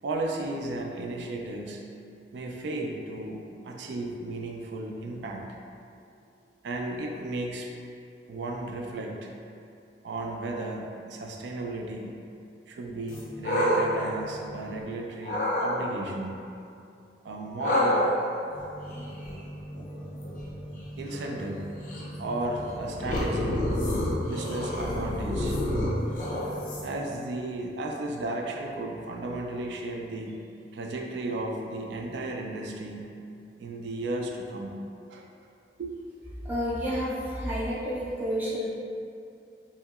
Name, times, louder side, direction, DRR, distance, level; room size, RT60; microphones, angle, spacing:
voice 1, 0.0-1.8 2.3-5.6 6.6-7.7 8.3-9.3 10.0-12.2 12.7-16.3 17.2-18.0 21.0-21.6 22.2-23.7 24.2-25.7 26.8-30.5 30.7-33.2 33.6-34.8 35.1-35.3 35.8-35.9, right 2 dB, 80° right, 1 dB, 0.3 m, -34 dB
sound 1, 13.1-14.8 15.2-15.7 17.6-27.1, left 1 dB, 50° left, 0.4 m, -29 dB
voice 2, 36.4-38.7, equal, 10° right, -9 dB, 0.4 m, -30 dB
2.8 x 2.8 x 2.3 m, 2.5 s
head